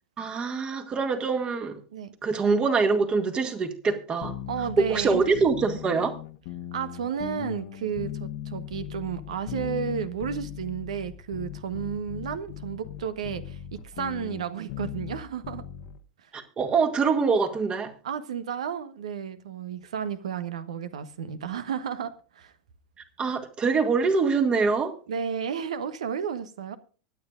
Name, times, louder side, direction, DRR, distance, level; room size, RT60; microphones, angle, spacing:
voice 1, 0.2-1.8 2.2-4.3 4.9-6.1 16.3-17.9 23.2-24.9, right 4 dB, 25° right, 2.0 m, -24 dB
sound 1, 4.2-16.0, left 11 dB, 55° left, 1.1 m, -38 dB
voice 2, 4.5-5.3 6.7-13.6 13.9-15.6 18.0-22.5 25.1-26.8, right 7 dB, 70° right, 1.2 m, -32 dB
24.0 x 9.3 x 2.5 m
figure-of-eight pair, 90°, 4 cm